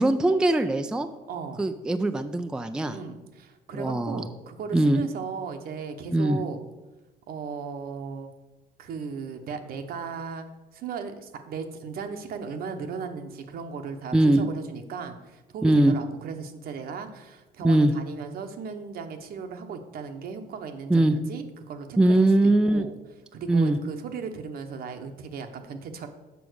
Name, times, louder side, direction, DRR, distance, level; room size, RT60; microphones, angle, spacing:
voice 1, 0.0-1.1 1.6-3.0 3.7-4.3 4.7-5.0 6.1-6.4 14.1-14.4 15.6-15.9 17.6-17.9 20.9-21.2 22.0-22.9 23.5-23.8, right 1 dB, 5° right, 8 dB, 0.4 m, -21 dB
voice 2, 1.3-1.6 2.9-6.6 7.3-8.3 8.8-10.5 10.7-22.3 22.7-22.9 23.3-26.1, right 5 dB, 65° right, 6 dB, 1.0 m, -36 dB
7.0 x 6.0 x 6.3 m, 1.1 s
cardioid pair, 110°, 17 cm